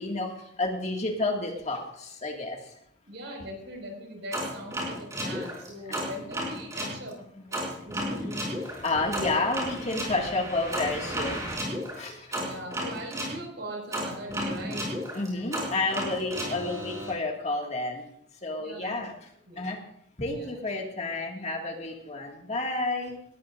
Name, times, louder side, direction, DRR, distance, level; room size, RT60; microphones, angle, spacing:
voice 1, 0.0-2.7 5.9-6.1 6.9-7.7 8.8-11.4 12.0-12.6 15.1-18.1 18.4-19.3 19.6-19.8 20.2-23.2, left 2 dB, 35° left, 1 dB, 2.1 m, -31 dB
voice 2, 3.1-7.2 7.5-8.3 12.3-14.8 18.6-19.1 19.5-19.7 20.3-20.5, equal, 65° right, 1 dB, 5.3 m, -40 dB
sound 1, 4.3-7.0 7.5-13.4 13.9-17.1, equal, 15° right, 4.9 m, -33 dB
19.0 x 14.0 x 2.6 m, 0.71 s
head